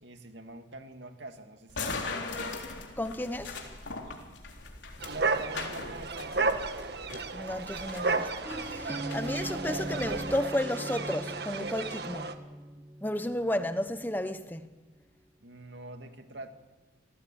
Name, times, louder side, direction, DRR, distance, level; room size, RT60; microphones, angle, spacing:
voice 1, 0.0-2.7 5.0-6.7 15.4-16.5, right 2 dB, 75° right, 2.5 m, -44 dB
sound 1, 1.7-10.4, left 3 dB, 80° left, 3.7 m, -41 dB
voice 2, 3.0-3.6 7.3-8.3 8.7-12.3 13.0-14.7, left 1 dB, 10° left, 1.0 m, -33 dB
sound 2, 5.0-12.3, right 3 dB, 60° right, 1.6 m, -33 dB
sound 3, 8.4-14.2, right 1 dB, 15° right, 1.8 m, -40 dB
27.5 x 18.5 x 8.7 m
head